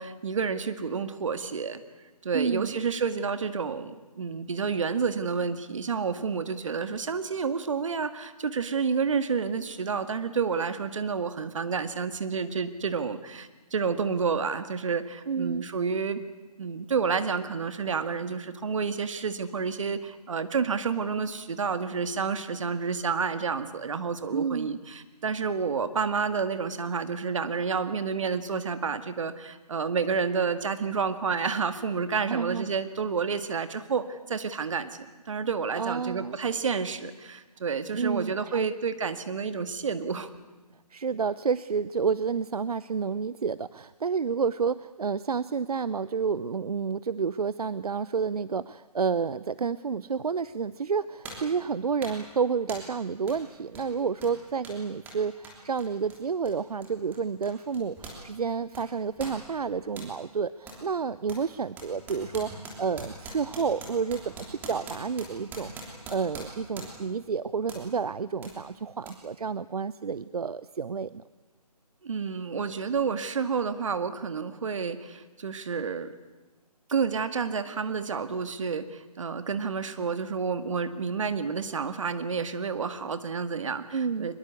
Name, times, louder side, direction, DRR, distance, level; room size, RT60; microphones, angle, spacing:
voice 1, 0.0-1.8 2.2-16.2 16.6-40.3 72.0-76.1 76.9-84.4, right 5 dB, 50° right, 10 dB, 1.9 m, -30 dB
voice 2, 2.3-2.8 15.3-15.7 24.3-24.7 32.3-32.7 35.7-36.4 37.9-38.7 40.9-65.7 66.1-71.2 83.9-84.3, right 6 dB, 65° right, 17 dB, 0.7 m, -30 dB
sound 1, 50.4-50.5 51.2-51.5 52.0-52.3 52.7-53.0 53.3-53.4 53.7-58.2 58.5-60.1 60.7-60.8 61.3-67.1 67.7-67.9 68.4-68.6 69.0-69.1, right 2 dB, 10° right, 3.2 m, -43 dB
23.0 x 22.0 x 8.4 m, 1.2 s
figure-of-eight pair, 160°, 20 cm